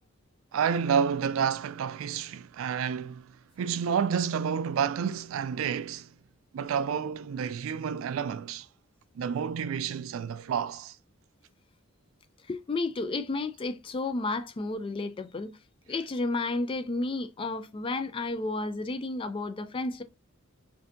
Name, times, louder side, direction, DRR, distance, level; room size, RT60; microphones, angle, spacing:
voice 1, 0.5-6.1 6.5-8.7 9.2-11.0, right 7 dB, 75° right, 0.3 m, -30 dB
voice 2, 12.5-15.6 15.9-20.0, left 3 dB, 25° left, 0.3 m, -32 dB
4.3 x 2.6 x 2.6 m
head